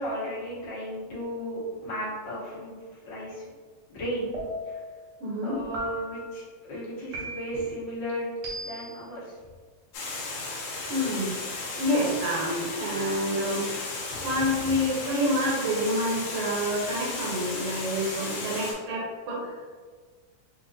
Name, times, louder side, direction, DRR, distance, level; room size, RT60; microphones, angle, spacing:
voice 1, 0.0-2.7 3.0-3.4 3.9-4.8 5.4-8.3 8.6-9.4 14.1-14.9, equal, 55° left, -8 dB, 1.3 m, -35 dB
sound 1, 4.3-4.9 5.7-6.3 7.1-7.7 8.4-9.0, right 1 dB, 90° right, 1.1 m, -37 dB
voice 2, 5.2-5.6 10.9-11.4 11.8-19.5, equal, 70° right, -5 dB, 1.6 m, -28 dB
Water, 9.9-18.7, left 3 dB, 70° left, 1.8 m, -35 dB
5.7 x 2.0 x 2.6 m, 1.5 s
omnidirectional pair, 3.4 m